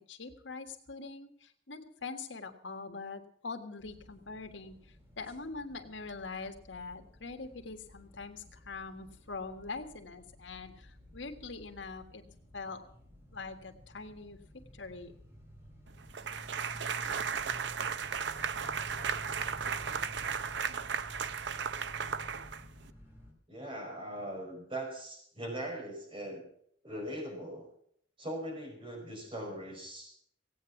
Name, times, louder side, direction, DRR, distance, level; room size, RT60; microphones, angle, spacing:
voice 1, 0.1-12.2 12.5-12.8 13.3-14.4 14.7-15.1, left 4 dB, 85° left, 5 dB, 1.7 m, -43 dB
sound 1, 3.8-23.3, equal, 15° right, 4.8 m, -52 dB
sound 2, 16.1-22.9, right 6 dB, 70° right, 0.7 m, -35 dB
voice 2, 23.5-26.4 26.8-27.7 28.2-30.1, right 1 dB, 30° right, 1 dB, 5.1 m, -40 dB
17.0 x 9.0 x 7.1 m, 0.64 s
head